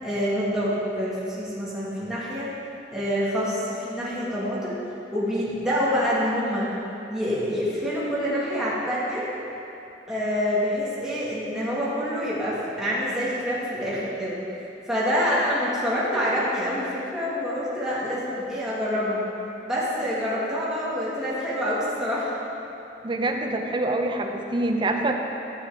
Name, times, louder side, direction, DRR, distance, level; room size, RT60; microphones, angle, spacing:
voice 1, 0.0-2.5 2.9-4.7 5.1-6.7 7.1-9.3 10.1-14.4 14.9-19.2 19.6-22.4, equal, 5° right, -9 dB, 1.7 m, -26 dB
voice 2, 23.0-25.1, right 2 dB, 25° right, 2 dB, 0.6 m, -25 dB
11.5 x 7.5 x 3.6 m, 2.9 s
head